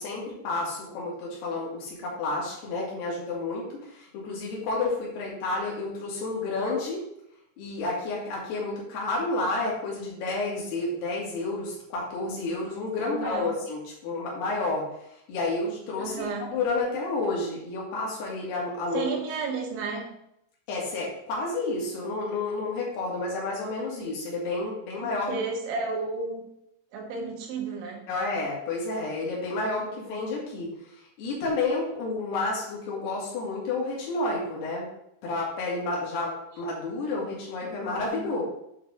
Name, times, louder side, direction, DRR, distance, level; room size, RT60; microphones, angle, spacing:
voice 1, 0.0-7.0 7.6-14.8 15.3-19.1 20.7-25.4 28.1-30.7 31.2-34.9 35.2-38.4, left 3 dB, 60° left, -4 dB, 4.0 m, -30 dB
voice 2, 13.0-13.6 16.0-16.6 18.9-20.1 25.0-26.4 26.9-28.0 36.5-36.6 37.6-38.3, right 4 dB, 75° right, 1 dB, 3.5 m, -33 dB
8.6 x 5.2 x 3.8 m, 0.77 s
omnidirectional pair, 5.6 m